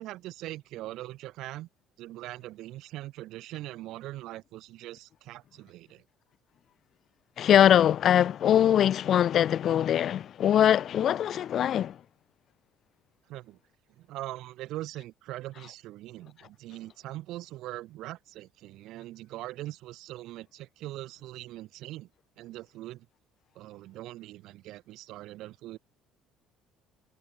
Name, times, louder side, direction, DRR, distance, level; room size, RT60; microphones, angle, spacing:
voice 1, 0.0-1.7 2.0-6.0 13.3-13.6 14.0-22.1 22.4-23.1 23.6-25.8, right 16 dB, 65° right, 2.0 m, -41 dB
voice 2, 7.4-12.0, left 10 dB, 45° left, 0.3 m, -22 dB
cardioid pair, 145°, 0 cm